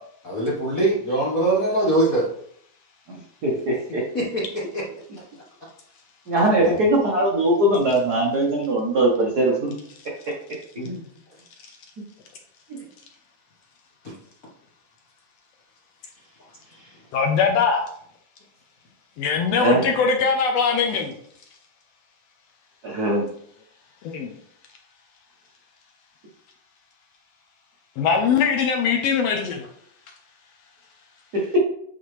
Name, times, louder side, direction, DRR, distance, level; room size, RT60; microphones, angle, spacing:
voice 1, 0.2-2.3 4.1-4.4 10.8-11.0, right 2 dB, 55° left, -5 dB, 0.9 m, -22 dB
voice 2, 3.1-4.0 6.3-9.7 10.2-10.3 12.7-12.8 19.6-19.8 22.8-23.3 31.3-31.6, right 1 dB, 90° right, -2 dB, 0.8 m, -21 dB
voice 3, 17.1-17.9 19.2-21.1 24.0-24.4 28.0-29.7, left 5 dB, 75° left, 4 dB, 1.6 m, -21 dB
8.5 x 4.1 x 3.1 m, 0.65 s
omnidirectional pair, 3.4 m